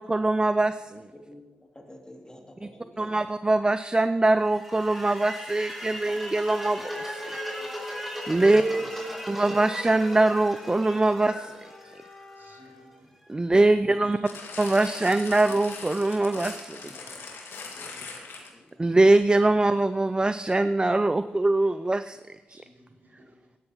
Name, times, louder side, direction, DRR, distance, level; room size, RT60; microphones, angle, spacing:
voice 1, 0.0-1.1 2.6-2.7 3.0-7.4 8.3-8.6 9.3-11.5 13.3-14.2 14.6-16.9 18.8-22.2 22.5-22.6, right 2 dB, 20° right, 11 dB, 0.5 m, -23 dB
voice 2, 1.7-3.1 8.4-9.0 14.1-14.2 16.7-17.2 17.8-18.2 18.5-18.8, left 1 dB, 20° left, 1 dB, 2.5 m, -47 dB
sound 1, 4.5-12.6, equal, 5° right, 3.8 m, -36 dB
sound 2, 8.9-12.9, left 3 dB, 60° left, 4.6 m, -49 dB
voice 3, 12.3-13.1 16.8-17.2 22.5-23.4, right 1 dB, 60° right, -2 dB, 3.6 m, -55 dB
sound 3, 14.3-18.7 19.4-19.5, left 4 dB, 80° left, 2.0 m, -40 dB
16.0 x 12.0 x 3.0 m, 1.2 s
supercardioid pair, 45°, 4 cm